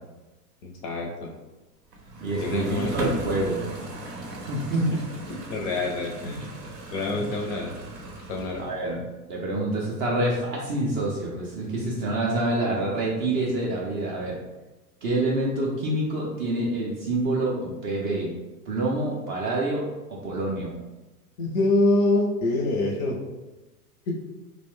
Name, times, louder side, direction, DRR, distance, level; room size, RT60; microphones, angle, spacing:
voice 1, 0.6-1.3 2.4-2.9 4.9-5.0 5.5-6.5 6.9-7.7 8.3-8.6 21.4-23.2 24.1-24.2, left 2 dB, 30° left, 0 dB, 0.4 m, -25 dB
sound 1, 1.9-8.9, right 1 dB, 80° right, 0.8 m, -37 dB
voice 2, 2.2-3.6 4.5-4.9 7.1-7.3 8.6-9.0 9.3-14.4 15.0-18.3 18.7-20.8, right 1 dB, 30° right, -3 dB, 0.4 m, -27 dB
2.4 x 2.1 x 3.6 m, 1.1 s
figure-of-eight pair, 85°, 47 cm